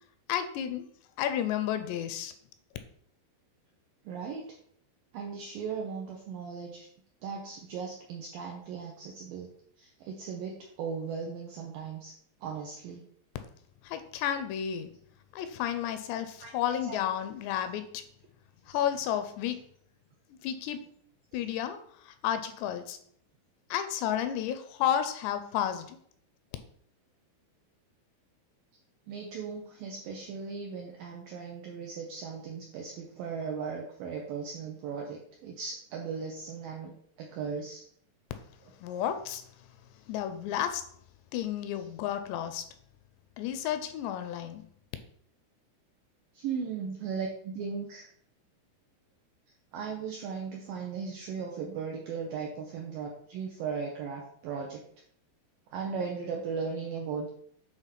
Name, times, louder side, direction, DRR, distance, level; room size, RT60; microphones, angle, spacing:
voice 1, 0.3-0.9 1.2-2.3 13.8-14.9 15.3-18.0 18.7-19.6 20.4-20.8 21.3-23.0 23.7-26.0 38.8-39.4 40.1-40.8 41.3-42.7 43.4-44.6, left 10 dB, 85° left, 9 dB, 2.6 m, -32 dB
voice 2, 4.1-4.5 5.1-6.9 7.2-9.5 9.8-12.1 12.4-13.0 16.4-16.5 16.9-17.0 29.1-37.8 46.3-48.1 49.7-54.8 55.7-57.3, right 5 dB, 80° right, 1 dB, 2.0 m, -37 dB
8.1 x 3.7 x 5.7 m, 0.65 s
omnidirectional pair, 5.2 m